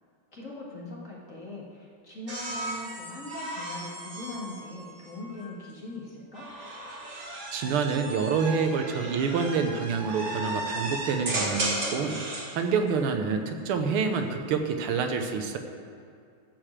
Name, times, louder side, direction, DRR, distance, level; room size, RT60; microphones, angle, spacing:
voice 1, 0.3-6.5, left 2 dB, 40° left, -4 dB, 2.1 m, -41 dB
sound 1, 2.3-5.5 6.3-12.6 14.0-14.5, right 1 dB, 35° right, 1.8 m, -35 dB
voice 2, 7.5-12.2 12.5-15.6, right 5 dB, 85° right, 6 dB, 1.7 m, -27 dB
13.0 x 5.0 x 7.3 m, 2.3 s
omnidirectional pair, 2.3 m